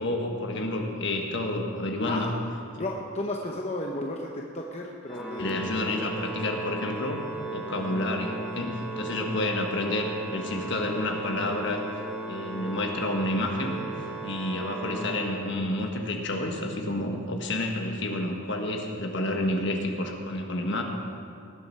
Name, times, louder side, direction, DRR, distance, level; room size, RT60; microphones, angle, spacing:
voice 1, 0.0-2.3 5.4-7.2 7.5-11.8 12.3-20.8, left 1 dB, 55° left, 2 dB, 1.5 m, -29 dB
voice 2, 2.8-5.8, left 1 dB, 30° left, 0 dB, 0.7 m, -33 dB
Organ, 5.1-16.0, right 2 dB, ahead, 1.5 m, -37 dB
19.0 x 7.8 x 5.6 m, 2.4 s
head